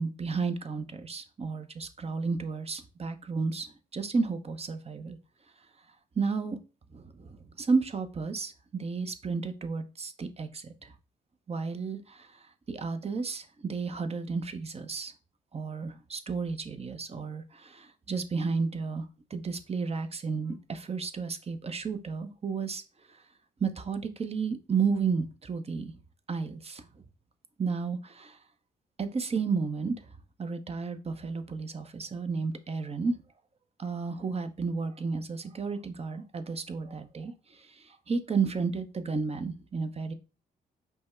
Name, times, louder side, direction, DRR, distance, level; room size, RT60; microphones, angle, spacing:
voice 1, 0.0-5.2 6.2-6.6 6.9-10.9 11.5-15.1 15.5-22.8 23.1-23.2 23.6-25.9 26.3-27.0 27.6-28.4 29.0-30.0 30.4-33.2 33.8-40.1, right 4 dB, 35° right, 9 dB, 0.7 m, -32 dB
5.4 x 2.2 x 4.4 m, 0.33 s
supercardioid pair, 55°, 19 cm